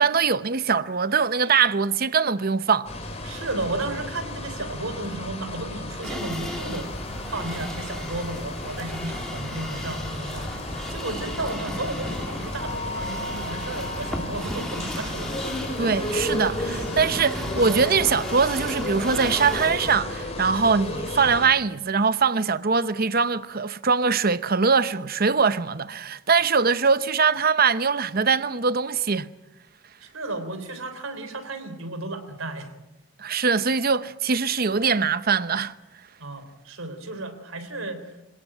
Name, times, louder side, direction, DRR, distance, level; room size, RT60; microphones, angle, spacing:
voice 1, 0.0-2.9 15.8-29.3 33.2-35.7, right 5 dB, 45° right, 0.8 m, -22 dB
sound 1, 2.8-21.5, left 1 dB, 30° left, 3.7 m, -33 dB
voice 2, 3.2-6.9 7.3-10.5 10.9-15.3 30.0-32.7 36.2-38.1, right 2 dB, 75° right, 3.6 m, -33 dB
sound 2, 6.0-19.9, equal, 5° left, 2.7 m, -35 dB
26.0 x 17.5 x 9.0 m
head